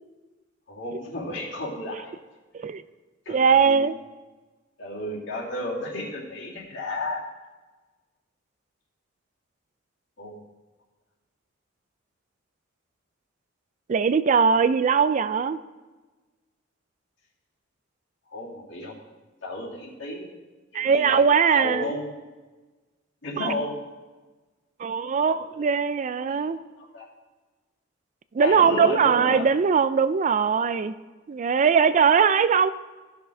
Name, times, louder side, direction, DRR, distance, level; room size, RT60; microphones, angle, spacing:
voice 1, 0.7-2.1 3.3-3.9 4.8-7.2 10.2-10.4 18.3-19.0 19.4-20.3 20.7-21.2 21.5-22.1 23.2-23.7 26.3-27.1 28.4-29.5 30.7-30.8, left 1 dB, 70° left, -6 dB, 2.5 m, -33 dB
voice 2, 3.3-4.0 13.9-15.6 20.7-21.8 23.4-23.5 24.8-26.6 28.3-30.9 31.3-32.7, right 6 dB, 40° right, 14 dB, 0.3 m, -20 dB
14.5 x 6.1 x 4.9 m, 1.3 s
head